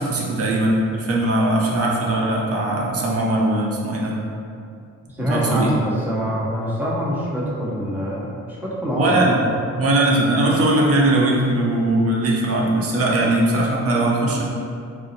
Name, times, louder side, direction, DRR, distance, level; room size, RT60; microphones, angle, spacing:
voice 1, 0.0-4.2 5.2-5.7 8.9-9.4 9.8-14.4, right 1 dB, 50° right, -2 dB, 0.6 m, -20 dB
voice 2, 5.1-9.8, equal, 5° right, -6 dB, 0.7 m, -25 dB
2.6 x 2.0 x 3.9 m, 2.4 s
cardioid pair, 90°, 30 cm